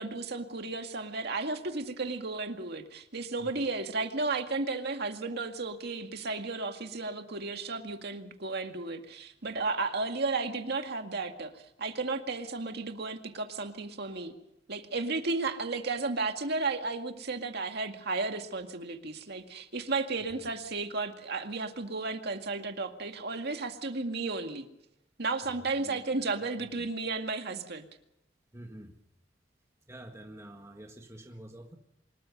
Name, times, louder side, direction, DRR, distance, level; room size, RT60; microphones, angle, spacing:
voice 1, 0.0-14.4 14.7-24.7 25.2-27.9, right 3 dB, 60° right, 5 dB, 2.1 m, -33 dB
voice 2, 3.4-3.7 20.3-20.5 25.4-26.9 28.5-29.0 29.9-31.8, right 1 dB, 15° right, 3 dB, 1.8 m, -49 dB
25.0 x 21.0 x 5.4 m, 0.81 s
head